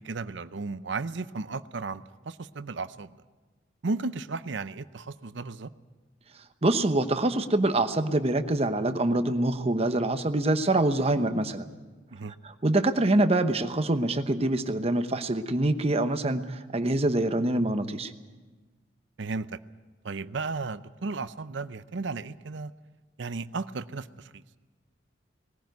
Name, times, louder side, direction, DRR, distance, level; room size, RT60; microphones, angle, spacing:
voice 1, 0.0-3.2 3.8-5.7 12.1-12.3 19.2-19.6 20.0-22.7 23.2-24.4, right 3 dB, 70° right, 13 dB, 0.7 m, -34 dB
voice 2, 6.6-11.7 12.4-18.1, right 2 dB, 35° right, 9 dB, 1.0 m, -25 dB
20.0 x 15.0 x 9.3 m, 1.3 s
head